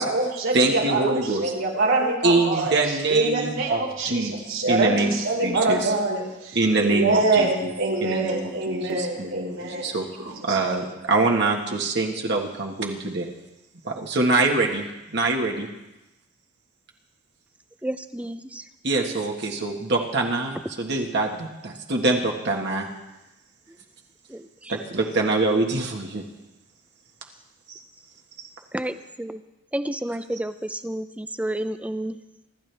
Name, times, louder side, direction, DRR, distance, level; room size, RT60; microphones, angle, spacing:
voice 1, 0.0-2.7 3.1-9.9 10.2-10.8, right 2 dB, 85° right, -2 dB, 4.6 m, -25 dB
voice 2, 0.5-1.5 2.2-4.3 4.7-5.1 5.4-5.9 6.5-7.7 8.0-13.3 13.8-15.7 18.8-22.9 24.7-26.2 27.7-27.8 28.4-28.5 30.1-30.2, right 3 dB, 60° right, 1 dB, 1.6 m, -24 dB
voice 3, 17.8-18.6 24.3-24.4 28.7-29.4 29.7-32.2, right 1 dB, 5° right, 11 dB, 0.6 m, -30 dB
25.0 x 12.5 x 3.4 m, 0.98 s
head